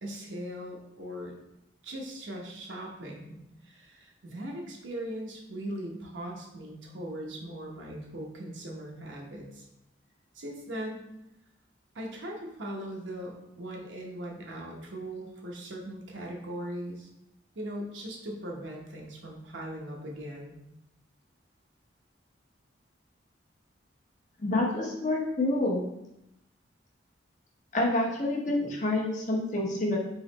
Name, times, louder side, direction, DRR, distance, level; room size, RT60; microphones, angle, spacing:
voice 1, 0.0-1.3 1.8-9.7 10.3-11.1 11.9-17.1 17.6-20.6, right 1 dB, 80° right, -1 dB, 1.0 m, -39 dB
voice 2, 24.4-25.9 27.7-30.0, left 2 dB, 40° left, -1 dB, 0.8 m, -28 dB
4.0 x 3.0 x 4.0 m, 0.85 s
head